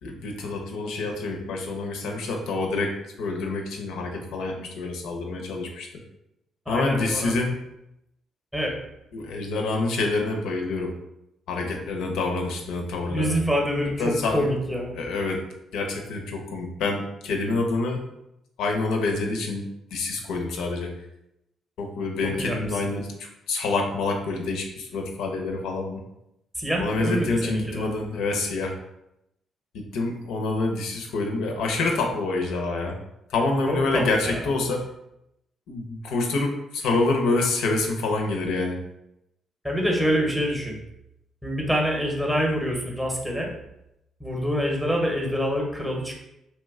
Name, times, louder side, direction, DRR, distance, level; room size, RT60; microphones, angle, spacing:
voice 1, 0.0-5.9 6.7-7.6 9.1-11.0 11.5-13.4 14.0-14.5 15.0-15.4 15.7-18.0 18.6-20.9 21.8-26.0 26.8-28.7 29.7-33.0 33.3-34.8 35.7-38.8, left 3 dB, 85° left, 2 dB, 0.6 m, -27 dB
voice 2, 6.7-7.3 8.5-8.8 13.1-15.0 22.4-22.6 26.6-27.9 33.7-34.0 39.6-40.8 41.4-43.5 44.2-46.1, equal, ahead, 0 dB, 0.7 m, -26 dB
2.9 x 2.2 x 3.5 m, 0.84 s
cardioid pair, 90°, 0 cm